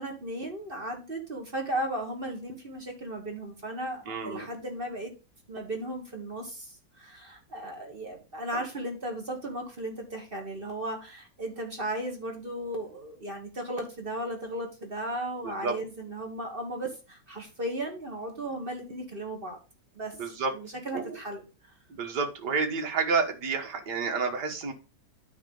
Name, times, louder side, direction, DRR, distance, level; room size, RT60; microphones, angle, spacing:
voice 1, 0.0-5.1 5.5-19.6 19.9-20.1 20.5-21.4, right 1 dB, 30° right, 2 dB, 1.8 m, -36 dB
voice 2, 4.1-4.5 15.4-15.8 20.2-20.5 20.9-21.2 21.9-24.7, right 4 dB, 70° right, 3 dB, 2.1 m, -30 dB
9.5 x 3.4 x 7.0 m, 0.31 s
omnidirectional pair, 1.9 m